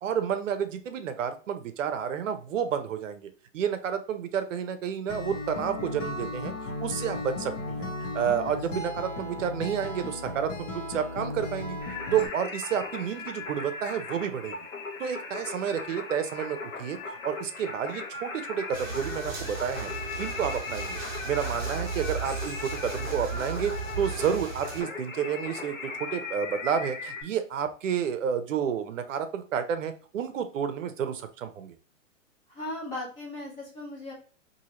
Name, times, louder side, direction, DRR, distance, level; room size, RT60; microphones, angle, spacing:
voice 1, 0.0-11.8 12.1-14.6 15.0-21.0 21.3-31.8, right 8 dB, 75° right, 9 dB, 0.6 m, -30 dB
Acoustic guitar, 5.1-12.3, left 2 dB, 70° left, 1.2 m, -35 dB
Singing, 11.8-27.2, left 4 dB, 90° left, 1.0 m, -38 dB
sound 1, 18.7-24.8, right 4 dB, 20° right, 0.9 m, -36 dB
voice 2, 32.5-34.1, left 2 dB, 15° left, -4 dB, 0.7 m, -37 dB
2.8 x 2.7 x 2.8 m, 0.40 s
hypercardioid pair, 150°, 39 cm